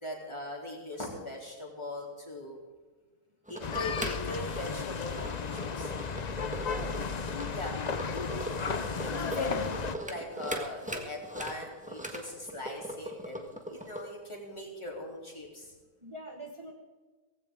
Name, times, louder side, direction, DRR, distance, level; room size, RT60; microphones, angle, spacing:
voice 1, 0.0-2.6 3.5-5.9 7.5-7.8 8.8-9.5 10.0-15.7, left 1 dB, 20° left, -2 dB, 3.4 m, -40 dB
sound 1, 3.5-14.0, right 1 dB, 5° right, 1.4 m, -40 dB
sound 2, 3.6-10.0, left 5 dB, 45° left, 0.6 m, -34 dB
voice 2, 6.6-7.0 8.8-9.6 16.0-16.7, right 1 dB, 20° right, 1 dB, 1.3 m, -44 dB
17.5 x 16.0 x 3.8 m, 1.4 s
omnidirectional pair, 1.5 m